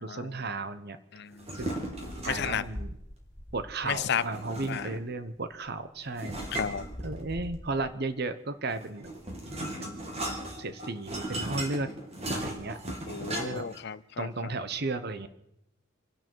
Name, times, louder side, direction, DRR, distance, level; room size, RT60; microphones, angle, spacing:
voice 1, 0.0-1.0 1.5-1.7 2.3-3.0 3.5-6.4 7.0-9.1 9.4-9.5 9.8-10.2 10.6-11.9 12.3-12.8 13.4-13.7 14.2-15.3, right 3 dB, 50° right, 11 dB, 1.0 m, -34 dB
sound 1, 1.3-2.7 4.1-5.1 6.2-7.5 8.7-13.8, right 1 dB, 30° right, 2.7 m, -37 dB
sound 2, 1.5-4.1 5.1-5.2 5.4-8.1, equal, 15° left, 3.0 m, -44 dB
voice 2, 2.2-2.6 4.1-4.2 4.7-4.8 6.5-6.8 13.1-14.3, left 7 dB, 50° left, 17 dB, 0.5 m, -32 dB
27.0 x 11.0 x 4.7 m, 0.81 s
head